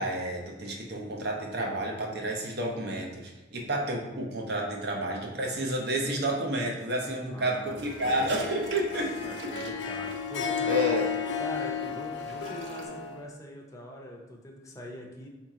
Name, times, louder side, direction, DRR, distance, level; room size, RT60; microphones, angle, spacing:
voice 1, 0.0-9.1 10.7-11.1, right 1 dB, 60° right, 0 dB, 0.8 m, -30 dB
voice 2, 7.2-8.4 9.2-10.8 11.4-15.3, equal, 15° left, -1 dB, 0.6 m, -43 dB
sound 1, 7.6-12.9, right 4 dB, 85° right, 0.5 m, -46 dB
Harp, 7.9-13.2, left 6 dB, 75° left, 0.4 m, -33 dB
4.7 x 2.9 x 3.6 m, 1.1 s
head